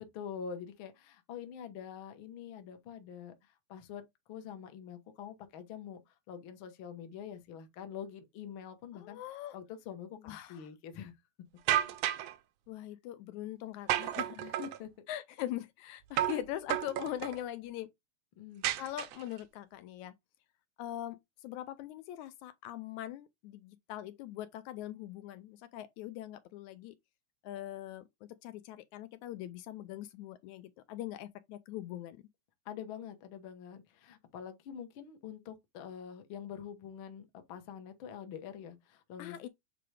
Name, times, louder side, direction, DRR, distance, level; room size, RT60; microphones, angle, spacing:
voice 1, 0.0-9.2 9.5-11.1 14.3-14.9 16.2-16.3 18.4-18.6 32.6-39.5, left 8 dB, 55° left, 1.5 m, -45 dB
voice 2, 8.9-9.6 10.3-10.6 12.7-14.4 15.1-17.9 18.8-20.1 20.8-27.0 27.4-28.0 28.4-32.2 39.2-39.5, left 13 dB, 80° left, 2.0 m, -42 dB
sound 1, 11.7-12.3 13.9-14.8 16.2-16.4 16.7-17.4 18.6-19.4, right 12 dB, 80° right, 1.5 m, -32 dB
7.5 x 3.9 x 3.3 m
omnidirectional pair, 3.4 m